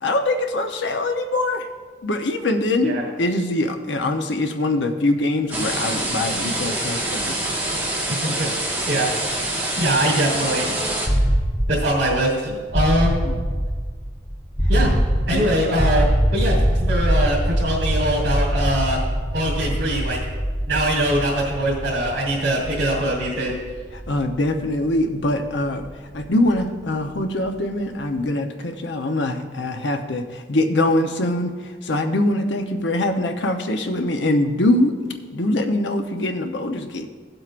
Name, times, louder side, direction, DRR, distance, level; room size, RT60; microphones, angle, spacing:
voice 1, 0.0-1.7 2.0-7.6 13.2-13.4 15.3-15.5 23.9-25.9 26.1-35.0 35.3-37.1, left 1 dB, 80° left, 5 dB, 0.9 m, -23 dB
sound 1, 5.5-11.1, right 1 dB, 10° right, 1.6 m, -25 dB
voice 2, 9.8-10.8 11.7-13.3 14.7-14.9 15.3-16.0 16.3-19.0 19.3-20.2 20.7-23.5, right 1 dB, 80° right, -8 dB, 2.9 m, -22 dB
sound 2, 11.1-26.9, equal, 20° left, 0.9 m, -23 dB
17.0 x 7.7 x 2.5 m, 1.5 s
head